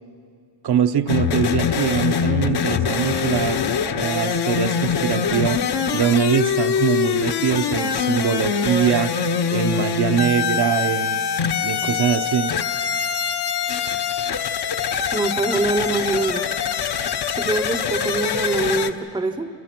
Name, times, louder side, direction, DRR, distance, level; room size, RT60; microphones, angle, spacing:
voice 1, 0.6-3.6 3.9-5.6 5.9-9.1 9.5-11.2 11.6-12.5, right 9 dB, 55° right, 7 dB, 0.9 m, -22 dB
sound 1, 1.1-18.9, left 7 dB, 55° left, 1.0 m, -23 dB
voice 2, 15.1-16.5 17.4-19.5, right 2 dB, 10° right, 9 dB, 0.7 m, -24 dB
29.0 x 29.0 x 6.0 m, 2.2 s
wide cardioid pair, 180°, 47 cm